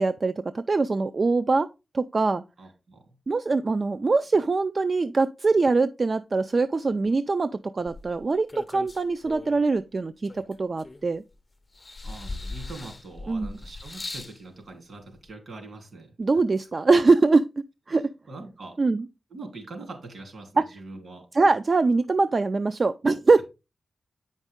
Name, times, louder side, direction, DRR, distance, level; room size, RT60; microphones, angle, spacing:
voice 1, 0.0-1.7 1.9-2.4 3.3-11.2 13.3-13.6 16.2-17.5 17.9-18.1 18.8-19.0 20.6-20.7 21.3-23.4, right 3 dB, 35° right, 0.3 m, -23 dB
voice 2, 2.6-3.1 12.0-16.1 18.3-18.8 19.3-21.3, right 2 dB, 65° right, 3.3 m, -42 dB
sound 1, 7.9-9.7 10.2-11.3 11.7-14.4 15.3-15.4, left 2 dB, 25° left, 0.5 m, -39 dB
9.0 x 5.3 x 3.6 m
wide cardioid pair, 150°, 0 cm